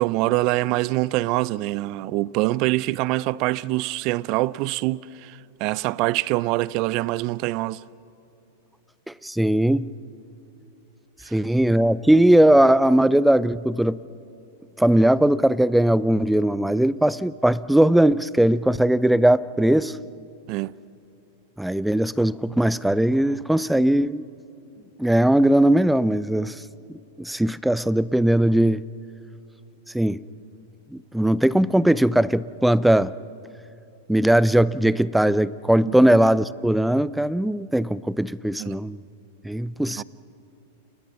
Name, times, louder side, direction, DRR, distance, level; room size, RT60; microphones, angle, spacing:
voice 1, 0.0-7.8 11.2-11.4 20.5-20.7 35.9-36.0 38.6-38.7 40.0-40.1, right 18 dB, 45° right, 0.5 m, -24 dB
voice 2, 9.1-9.9 11.3-14.0 14.8-20.0 21.6-24.2 25.0-26.5 27.2-28.8 29.9-30.2 30.9-33.1 34.1-39.0 39.4-40.0, right 1 dB, 5° right, 0.6 m, -19 dB
29.5 x 29.0 x 5.8 m
hypercardioid pair, 120°, 0 cm